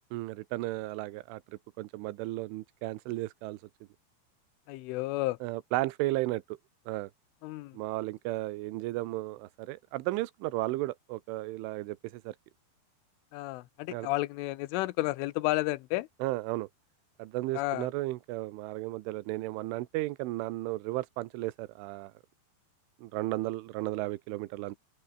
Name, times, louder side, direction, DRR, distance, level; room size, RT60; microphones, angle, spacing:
voice 1, 0.1-3.6 5.4-6.6 6.9-7.1 7.7-12.4 13.9-14.1 16.2-16.7 17.2-22.1 23.0-24.8, right 18 dB, 80° right, 3.5 m, -34 dB
voice 2, 4.7-5.4 7.4-7.7 13.3-16.1 17.6-17.9, left 19 dB, 85° left, 3.3 m, -31 dB
open air
omnidirectional pair, 5.6 m